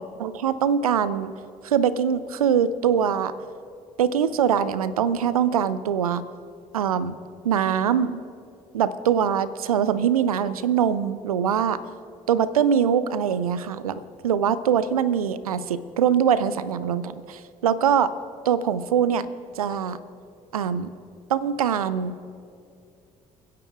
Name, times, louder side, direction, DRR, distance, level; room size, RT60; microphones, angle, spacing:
voice 1, 0.0-1.3 1.6-3.3 4.0-6.2 6.7-7.2 7.4-8.2 8.7-11.8 12.3-18.1 18.5-19.3 19.6-20.0 20.5-20.9 21.3-22.1, right 8 dB, 80° right, 16 dB, 0.5 m, -23 dB
29.5 x 10.5 x 2.4 m, 2.5 s
figure-of-eight pair, 50°, 18 cm